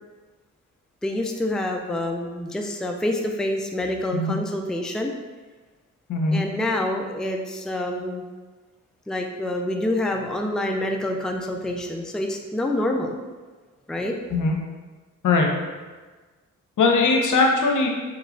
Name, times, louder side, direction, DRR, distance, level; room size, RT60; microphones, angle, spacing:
voice 1, 1.0-5.1 6.3-8.2 9.1-13.1 13.9-14.1, left 1 dB, ahead, 2 dB, 0.4 m, -27 dB
voice 2, 6.1-6.4 14.3-14.5 15.2-15.5 16.8-17.9, left 3 dB, 75° left, 1 dB, 0.8 m, -20 dB
3.2 x 3.1 x 3.8 m, 1.3 s
cardioid pair, 70°, 31 cm